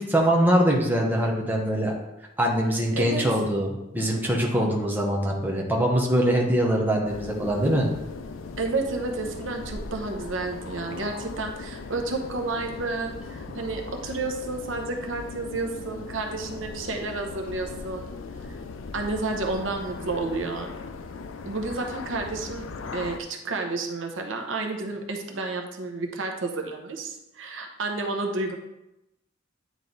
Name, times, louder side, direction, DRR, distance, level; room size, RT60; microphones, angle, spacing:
voice 1, 0.0-1.9 2.4-7.9, right 1 dB, 10° right, -1 dB, 0.9 m, -23 dB
sound 1, 7.1-23.2, left 4 dB, 85° left, 0.5 m, -38 dB
voice 2, 8.6-18.1 18.9-20.7 21.4-22.7 22.9-28.5, right 3 dB, 80° right, 3 dB, 0.8 m, -31 dB
9.1 x 3.2 x 4.0 m, 0.91 s
head